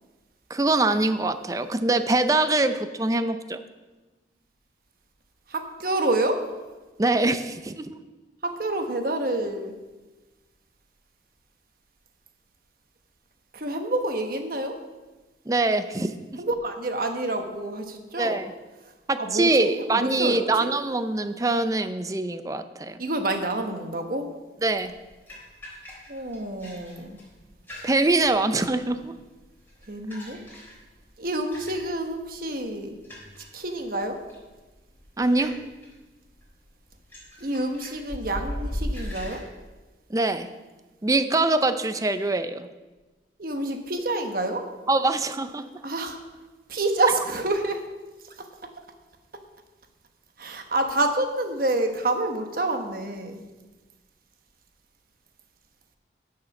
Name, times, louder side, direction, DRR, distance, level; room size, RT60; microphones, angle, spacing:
voice 1, 0.5-3.6 7.0-8.0 15.5-16.4 18.2-18.5 19.1-23.0 24.6-24.9 27.8-29.2 35.2-35.6 40.1-40.5 41.0-42.7 44.9-45.7, right 2 dB, 20° right, 10 dB, 0.5 m, -24 dB
voice 2, 5.5-6.4 8.4-9.7 13.5-14.8 16.4-18.4 19.2-20.7 23.0-24.3 26.1-27.2 29.9-30.4 31.2-32.9 33.5-34.2 37.4-39.4 43.4-44.7 45.8-46.2 46.7-47.8 48.4-48.5 50.4-53.4, right 2 dB, 55° right, 5 dB, 1.1 m, -28 dB
sound 1, 24.7-39.4, equal, 10° left, 3.7 m, -40 dB
11.5 x 6.5 x 5.9 m, 1.2 s
head